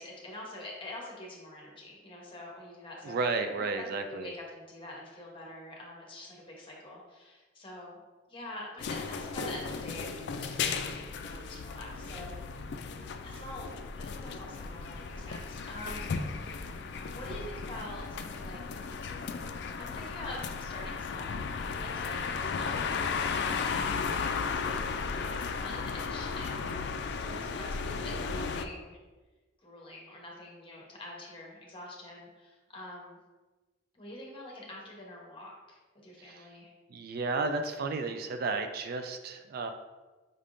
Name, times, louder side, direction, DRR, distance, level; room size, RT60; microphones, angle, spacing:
voice 1, 0.0-3.2 3.6-8.0 8.3-12.9 13.2-16.7 17.1-18.7 19.8-21.4 21.8-26.9 27.2-29.0 29.6-33.2 33.9-36.7, left 1 dB, 30° left, -2 dB, 0.9 m, -46 dB
voice 2, 3.0-4.3 36.2-36.5 36.9-39.7, right 3 dB, 55° right, 7 dB, 0.3 m, -33 dB
sound 1, 8.8-28.7, left 5 dB, 65° left, 0.3 m, -35 dB
5.3 x 3.5 x 2.5 m, 1.2 s
head